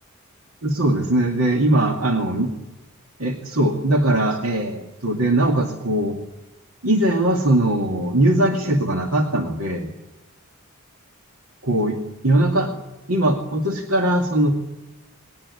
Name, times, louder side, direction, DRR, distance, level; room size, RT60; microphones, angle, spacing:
voice 1, 0.6-2.5 3.2-6.2 6.8-9.9 11.6-12.0 12.2-12.7 13.1-14.5, right 1 dB, 80° right, 2 dB, 2.3 m, -20 dB
20.5 x 19.0 x 9.8 m, 1.0 s
head